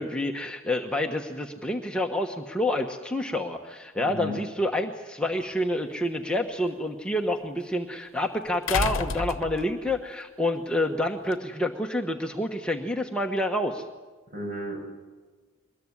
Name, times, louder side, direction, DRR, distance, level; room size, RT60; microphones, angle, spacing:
voice 1, 0.0-13.9, left 1 dB, 5° left, 1 dB, 1.2 m, -28 dB
voice 2, 4.0-4.3 14.3-14.9, equal, 45° right, 2 dB, 7.9 m, -34 dB
sound 1, 5.4-5.5 8.7-10.0 11.3-11.4, left 4 dB, 75° left, 0.9 m, -29 dB
23.0 x 21.0 x 9.8 m, 1.3 s
head